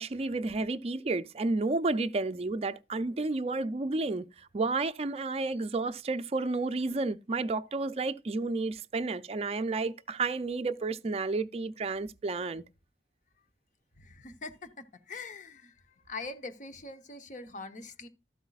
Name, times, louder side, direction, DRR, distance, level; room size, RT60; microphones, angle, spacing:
voice 1, 0.0-4.3 4.5-12.6, right 3 dB, 35° right, 0.4 m, -31 dB
voice 2, 14.0-14.7 15.1-15.7 16.1-18.1, left 3 dB, 45° left, 0.9 m, -42 dB
12.5 x 8.1 x 2.4 m
head